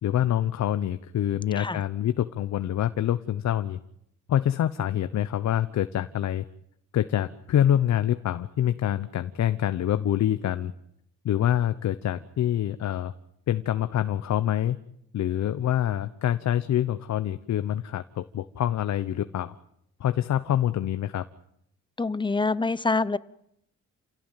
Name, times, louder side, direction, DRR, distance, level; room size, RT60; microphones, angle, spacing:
voice 1, 0.0-3.8 4.3-6.4 6.9-10.7 11.2-13.1 13.5-14.8 15.1-19.5 20.0-21.2, left 11 dB, 65° left, 1.1 m, -26 dB
voice 2, 22.0-23.2, left 3 dB, 15° left, 1.0 m, -26 dB
29.0 x 17.0 x 9.2 m
cardioid pair, 90°, 30 cm